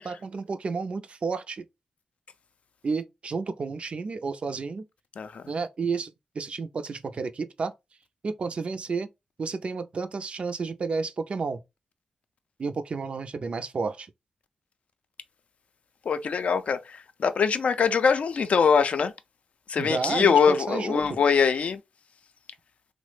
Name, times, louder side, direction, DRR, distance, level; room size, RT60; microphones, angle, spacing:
voice 1, 0.0-1.6 2.8-4.9 5.5-7.7 8.2-9.1 9.4-11.6 12.6-14.1 19.8-21.0, right 4 dB, 55° right, 0.4 m, -31 dB
voice 2, 16.1-19.1 19.7-21.8, left 6 dB, 65° left, 0.4 m, -23 dB
3.1 x 2.0 x 3.1 m
cardioid pair, 65°, 2 cm